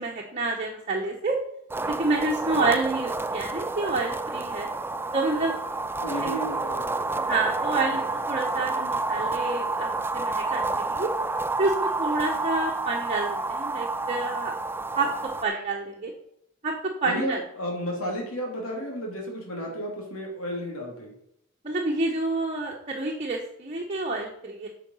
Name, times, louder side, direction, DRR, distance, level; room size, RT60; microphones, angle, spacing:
voice 1, 0.0-1.4 1.9-4.7 5.1-5.6 6.2-6.4 7.2-11.1 11.6-14.6 14.9-16.1 16.6-17.4 21.6-24.7, right 3 dB, 35° right, -1 dB, 1.2 m, -28 dB
sound 1, 1.7-15.4, right 3 dB, 10° right, 0.3 m, -29 dB
voice 2, 6.0-7.0 17.0-21.1, equal, 80° left, -1 dB, 3.0 m, -33 dB
8.9 x 5.9 x 5.6 m, 0.77 s
head